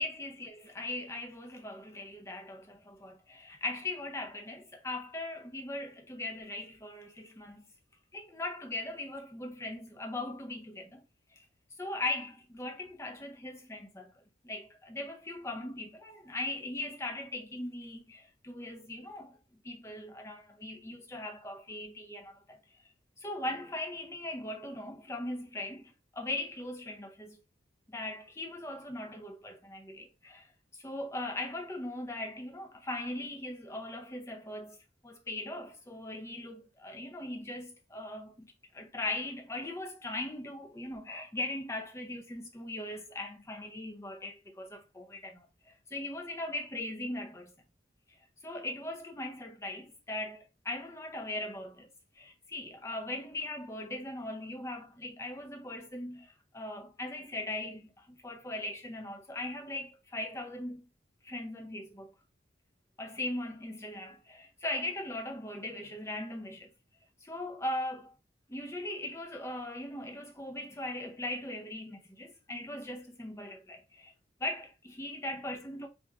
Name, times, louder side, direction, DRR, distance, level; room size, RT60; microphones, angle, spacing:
voice 1, 0.0-7.6 8.1-11.0 11.3-11.4 11.8-19.4 19.6-22.6 23.2-27.4 27.9-30.5 30.8-34.8 35.0-47.5 48.1-48.2 48.4-51.9 52.1-60.9 61.2-62.1 63.0-66.7 67.2-68.1 68.5-74.1 74.4-75.9, left 1 dB, 15° left, 0.5 m, -39 dB
3.5 x 2.9 x 2.4 m
head